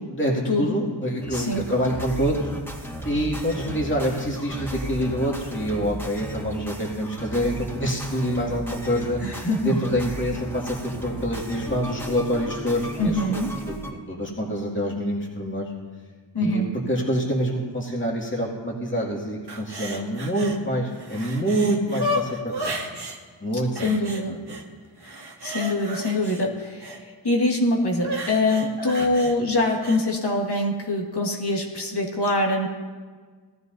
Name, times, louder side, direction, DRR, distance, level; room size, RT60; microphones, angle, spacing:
voice 1, 0.0-2.5 3.0-9.2 9.6-15.7 16.4-22.7 23.4-23.9 24.5-24.6 28.9-29.1, equal, 25° left, -3 dB, 2.3 m, -26 dB
sound 1, 1.2-13.9, right 1 dB, 5° left, 2.2 m, -35 dB
voice 2, 1.3-1.6 9.2-9.9 13.0-13.5 16.3-16.7 23.7-24.4 25.1-25.2 25.4-26.9 27.2-32.7, left 2 dB, 65° left, 0 dB, 1.9 m, -24 dB
sound 2, 19.5-20.6 20.9-23.2 23.8-24.6 25.0-27.0 28.0-30.0 30.5-30.6, equal, 60° right, 1.5 m, -33 dB
18.5 x 13.0 x 2.7 m, 1.5 s
wide cardioid pair, 70°, 44 cm